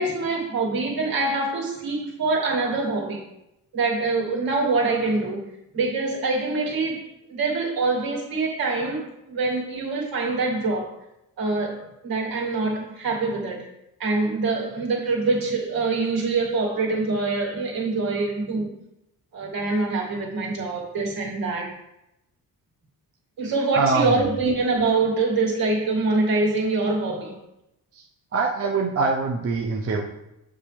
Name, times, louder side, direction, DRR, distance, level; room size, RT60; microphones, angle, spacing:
voice 1, 0.0-3.2 3.7-5.5 5.7-11.0 11.4-13.7 14.0-18.7 19.3-21.7 23.4-27.4, right 3 dB, 70° right, 2.4 m, -25 dB
voice 2, 23.7-24.2 27.9-28.0 28.3-30.0, right 4 dB, 40° right, 0.8 m, -23 dB
7.9 x 5.6 x 3.4 m
cardioid pair, 115°, 37 cm